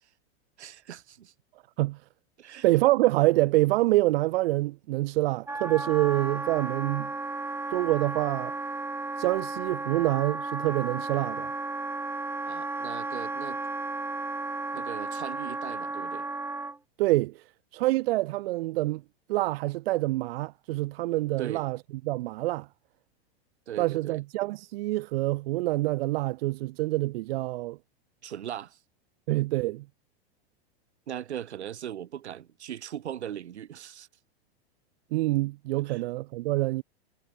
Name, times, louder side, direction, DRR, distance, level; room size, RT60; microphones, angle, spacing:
voice 1, 0.6-1.3 2.4-2.7 12.5-13.6 14.7-16.3 21.4-21.6 23.7-24.2 28.2-28.8 31.1-34.1 35.9-36.0, right 10 dB, 90° right, 6.3 m, -39 dB
voice 2, 2.6-7.1 7.7-8.5 9.2-11.5 17.0-17.4 17.7-19.0 19.3-21.8 22.0-22.7 23.8-27.8 29.3-29.8 35.1-36.8, right 19 dB, 65° right, 1.4 m, -26 dB
Wind instrument woodwind instrument, 5.5-16.8, right 3 dB, 5° right, 2.2 m, -34 dB
supercardioid pair, 130°, 32 cm